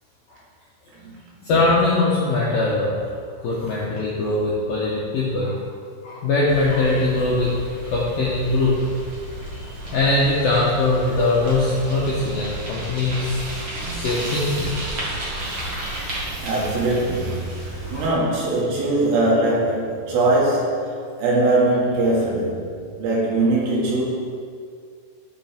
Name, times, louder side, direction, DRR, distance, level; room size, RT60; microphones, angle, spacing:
voice 1, 1.4-3.0 3.4-5.6 6.0-7.5 7.9-8.7 9.9-14.7 15.3-15.4 17.9-18.1, left 2 dB, 70° left, -7 dB, 2.2 m, -21 dB
Bicycle, 6.5-18.1, right 1 dB, 60° right, 1.3 m, -32 dB
voice 2, 16.4-20.9 21.2-22.7 23.0-24.0, right 2 dB, 80° right, -6 dB, 4.9 m, -21 dB
15.0 x 6.9 x 3.6 m, 2.1 s
omnidirectional pair, 5.9 m